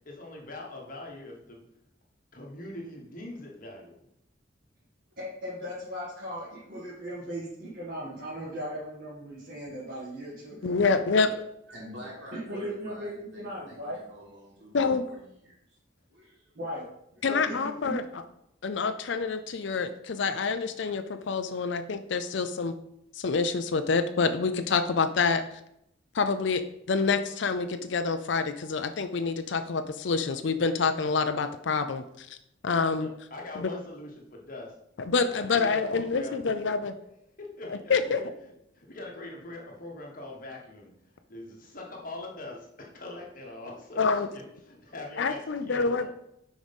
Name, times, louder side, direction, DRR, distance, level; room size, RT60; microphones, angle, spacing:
voice 1, 0.0-1.7 2.3-3.9 11.2-11.4 12.0-12.1 33.0-34.7 35.3-36.4 37.4-38.3 38.7-40.9 41.3-46.1, left 2 dB, 45° left, 0 dB, 1.4 m, -42 dB
voice 2, 5.2-10.8 12.3-14.0 16.5-16.9 17.3-18.0, equal, 45° right, -9 dB, 2.2 m, -37 dB
voice 3, 10.6-11.3 14.7-15.0 17.2-18.0 18.6-22.7 23.1-25.4 26.1-26.6 26.9-32.4 32.6-33.1 33.6-33.7 35.1-36.9 37.7-38.2 44.0-44.3 45.2-46.1, left 4 dB, 65° left, 8 dB, 0.5 m, -27 dB
voice 4, 11.7-14.8 15.0-15.6 16.1-16.6, left 1 dB, 70° right, -5 dB, 3.1 m, -47 dB
6.3 x 5.0 x 5.3 m, 0.78 s
head